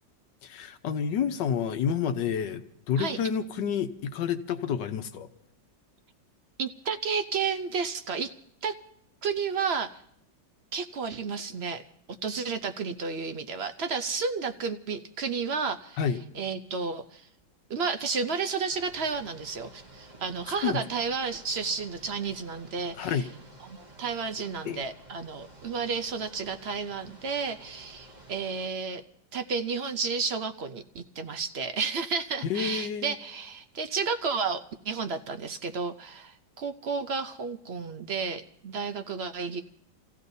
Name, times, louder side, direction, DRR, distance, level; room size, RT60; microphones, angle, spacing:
voice 1, 0.4-5.3 16.0-16.2 20.6-20.8 23.0-23.3 24.6-24.8 32.4-33.2, left 7 dB, 85° left, 8 dB, 1.5 m, -29 dB
voice 2, 6.6-8.3 8.6-8.8 9.2-9.9 10.7-11.8 12.2-16.0 16.4-17.2 17.7-23.1 23.7-29.0 29.3-39.6, right 5 dB, 60° right, 9 dB, 0.6 m, -32 dB
sound 1, 18.7-28.7, right 1 dB, 30° right, 1.1 m, -52 dB
30.0 x 15.5 x 2.7 m, 0.69 s
omnidirectional pair, 1.9 m